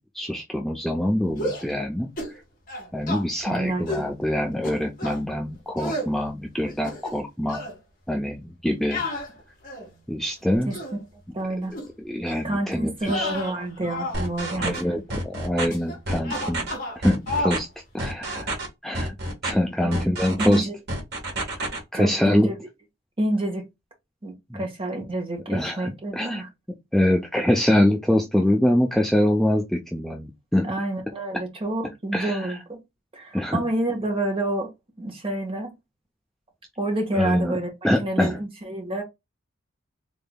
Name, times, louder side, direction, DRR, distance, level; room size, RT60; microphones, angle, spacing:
voice 1, 0.1-2.1 2.9-7.6 8.1-9.0 10.1-10.7 12.0-13.3 14.6-16.6 17.0-17.7 17.9-18.5 18.8-19.2 19.4-20.7 21.9-22.5 24.5-24.6 25.5-26.4 26.9-30.7 32.1-32.6 33.3-33.6 37.1-37.6 37.8-38.4, left 1 dB, ahead, 0.4 m, -24 dB
sound 1, 1.3-1.7 2.2-2.4 2.7-3.2 3.9-4.1 4.6-5.2 5.8-6.1 6.6-7.2 7.5-7.7 8.9-10.0 10.5-11.0 11.7-11.9 12.3-12.5 13.0-14.2 14.5-14.8 15.7-16.0 16.2-17.0 17.3-17.6, left 1 dB, 45° left, 1.7 m, -31 dB
voice 2, 3.4-4.1 10.7-11.0 11.3-11.7 12.4-14.8 19.8-20.8 21.9-22.6 23.2-23.7 24.2-26.5 30.6-32.8 33.1-34.7 35.0-35.7 36.8-37.7 38.0-39.0, right 1 dB, 30° right, 1.4 m, -28 dB
sound 2, 14.1-14.8 15.1-15.7 16.1-16.7 17.0-17.6 18.0-18.7 18.9-19.5 19.9-20.6 20.9-21.8, right 1 dB, 55° right, 1.7 m, -29 dB
3.8 x 3.6 x 2.2 m
head